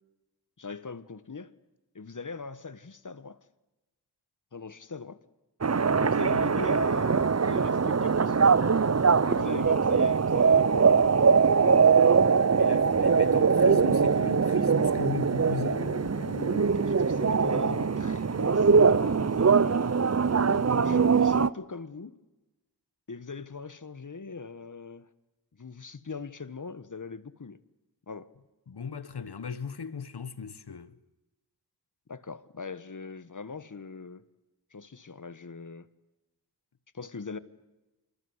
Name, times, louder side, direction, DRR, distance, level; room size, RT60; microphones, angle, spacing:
voice 1, 0.6-1.5 1.9-3.4 4.5-5.2 6.0-8.6 9.2-11.1 15.6-19.8 20.3-22.2 23.1-25.1 25.6-27.6 28.1-28.3 32.1-34.2 34.7-35.9 36.9-37.4, left 4 dB, 50° left, 1.5 m, -41 dB
sound 1, 5.6-21.5, right 5 dB, 40° right, 0.8 m, -22 dB
voice 2, 12.6-15.8 28.7-31.0, left 6 dB, 85° left, 1.4 m, -37 dB
27.5 x 26.0 x 8.1 m
wide cardioid pair, 75°, 38 cm